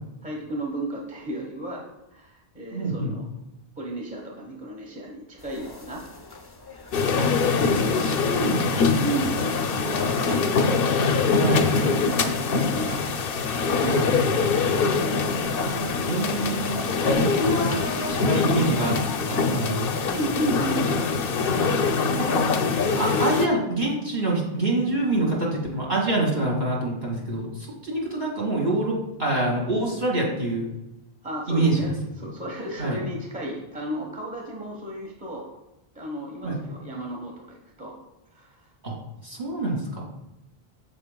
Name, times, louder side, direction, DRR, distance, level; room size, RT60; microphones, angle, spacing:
voice 1, 0.2-1.8 2.1-3.2 3.8-6.0 7.0-7.6 9.0-10.4 11.1-13.0 13.6-15.1 17.1-17.3 20.0-21.5 21.8-22.7 31.2-31.9 32.2-35.5 35.9-37.9 38.3-38.7, right 1 dB, 10° right, -1 dB, 1.0 m, -34 dB
voice 2, 2.7-3.1 7.2-7.3 7.6-8.8 11.3-11.7 13.9-14.3 16.1-19.0 19.3-19.9 22.2-22.4 22.8-30.7 31.5-31.8 32.8-33.0 36.4-36.6 38.8-38.9 39.2-40.0, right 2 dB, 45° right, -3 dB, 2.4 m, -26 dB
sound 1, 5.4-21.8, left 2 dB, 25° left, 0.7 m, -41 dB
sound 2, 6.9-23.5, left 4 dB, 70° left, 0.8 m, -23 dB
9.5 x 7.6 x 2.2 m, 0.93 s
omnidirectional pair, 1.0 m